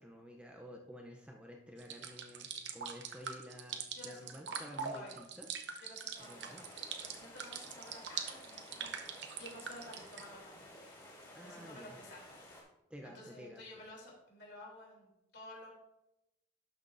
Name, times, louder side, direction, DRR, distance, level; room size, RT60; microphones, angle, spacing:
voice 1, 0.0-5.5 6.2-6.7 11.3-12.0 12.9-13.6, equal, 5° right, 1 dB, 0.5 m, -51 dB
sound 1, 1.8-10.2, right 6 dB, 60° right, 0.8 m, -43 dB
voice 2, 3.9-5.2 5.8-6.6 7.0-10.7 11.4-12.2 13.0-15.7, left 1 dB, 55° left, -3 dB, 3.0 m, -53 dB
sound 2, 6.1-12.6, left 1 dB, 20° left, 2.4 m, -54 dB
12.0 x 6.0 x 2.6 m, 0.89 s
head